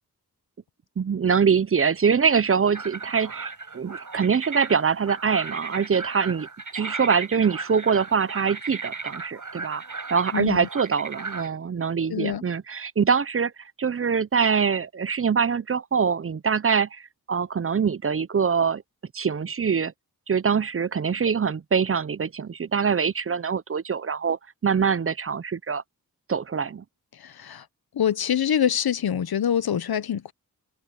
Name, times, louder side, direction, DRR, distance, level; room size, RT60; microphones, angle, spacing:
voice 1, 1.0-6.5 6.7-9.8 10.1-13.5 13.8-18.8 19.1-19.9 20.3-25.8 26.3-26.8, right 6 dB, 40° right, 0.5 m, -24 dB
sound 1, 2.7-11.5, right 4 dB, 55° right, 6.7 m, -36 dB
voice 2, 12.1-12.4 27.5-27.6 28.0-30.3, left 9 dB, 80° left, 0.8 m, -24 dB
open air
wide cardioid pair, 70°, 36 cm